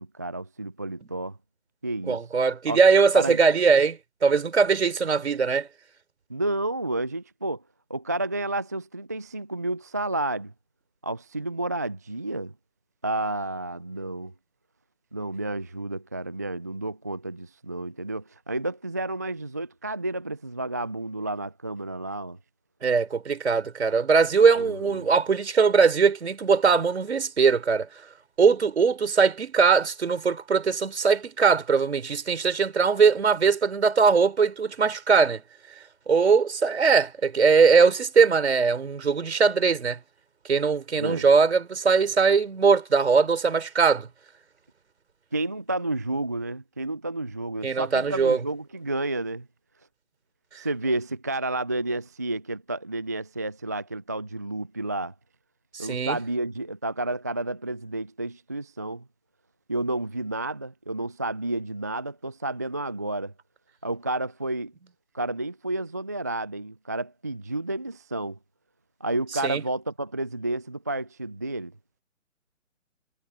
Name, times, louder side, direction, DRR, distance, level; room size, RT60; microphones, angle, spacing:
voice 1, 0.0-1.4 1.8-2.2 2.7-2.8 3.1-3.4 6.3-7.6 7.9-10.5 11.0-12.5 13.0-14.3 15.1-22.4 24.6-25.1 41.0-41.3 45.3-49.5 50.5-55.1 55.8-59.0 59.7-63.3 63.8-64.7 65.1-68.4 69.0-71.7, right 2 dB, 15° right, 0.5 m, -31 dB
voice 2, 2.1-5.7 22.8-27.9 28.4-35.4 36.1-40.0 40.5-44.1 47.6-48.4 55.7-56.2 69.4-69.6, right 5 dB, 60° right, 5.1 m, -21 dB
figure-of-eight pair, 140°, 38 cm